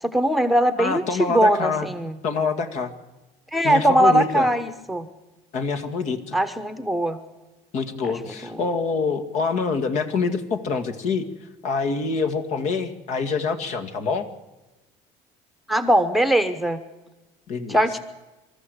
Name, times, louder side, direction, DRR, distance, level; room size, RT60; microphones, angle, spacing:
voice 1, 0.0-2.1 3.5-5.1 6.3-7.2 8.4-8.6 15.7-16.8 17.7-18.0, right 1 dB, ahead, 10 dB, 1.1 m, -20 dB
voice 2, 0.8-1.9 2.2-2.9 3.6-4.5 5.5-6.4 7.7-11.3 11.6-14.3 17.5-17.8, left 4 dB, 60° left, 7 dB, 2.2 m, -25 dB
26.5 x 13.5 x 8.1 m, 1.1 s
cardioid pair, 120°, 14 cm